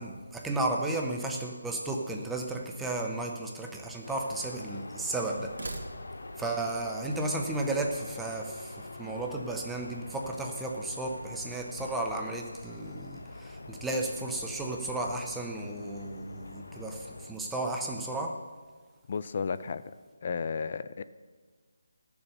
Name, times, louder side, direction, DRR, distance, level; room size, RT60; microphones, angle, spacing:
voice 1, 0.0-5.6 6.4-18.4, right 2 dB, 5° right, 0 dB, 0.6 m, -34 dB
sound 1, 2.0-2.7 3.6-4.7 5.4-6.4, right 2 dB, 75° right, 1.8 m, -45 dB
sound 2, 4.0-17.3, left 2 dB, 90° left, 0.8 m, -45 dB
voice 2, 19.1-19.9 20.2-21.0, left 5 dB, 35° left, 14 dB, 0.3 m, -33 dB
13.5 x 7.0 x 5.3 m, 1.5 s
figure-of-eight pair, 175°, 0 cm